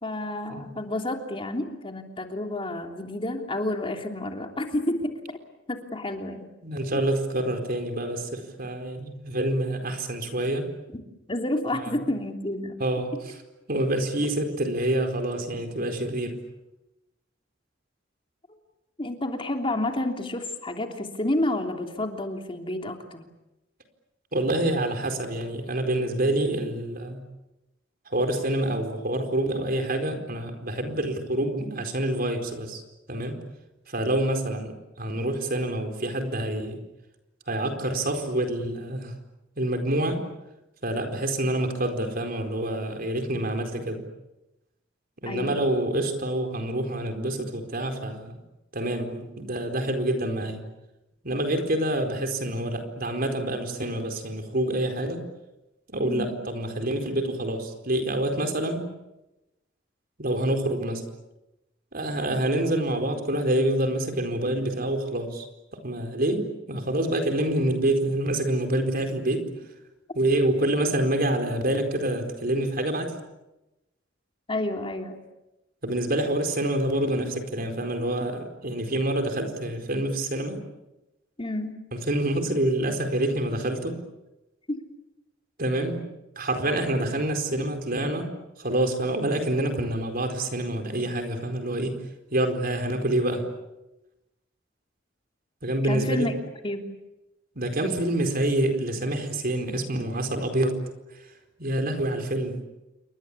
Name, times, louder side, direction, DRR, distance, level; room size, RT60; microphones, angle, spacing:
voice 1, 0.0-5.4 5.7-6.5 11.3-12.8 19.0-23.2 45.3-45.6 56.0-56.3 74.5-75.1 81.4-81.8 84.7-84.8 95.9-96.3 96.6-96.9, left 1 dB, 30° left, 3 dB, 3.2 m, -30 dB
voice 2, 6.6-10.7 11.7-11.9 12.8-13.2 13.7-16.4 24.3-27.2 28.1-32.8 33.1-33.4 33.9-34.7 35.0-36.8 37.5-39.2 39.6-40.2 40.8-44.0 45.2-48.4 48.7-50.6 51.2-55.2 55.9-58.9 60.2-61.1 61.9-65.5 65.7-69.5 70.1-73.1 75.8-80.6 81.9-84.0 85.6-86.0 86.4-88.3 88.6-92.0 92.3-93.5 95.6-96.3 97.5-100.8 101.6-102.6, right 1 dB, 50° right, 6 dB, 4.5 m, -27 dB
29.0 x 24.0 x 8.6 m, 0.98 s
head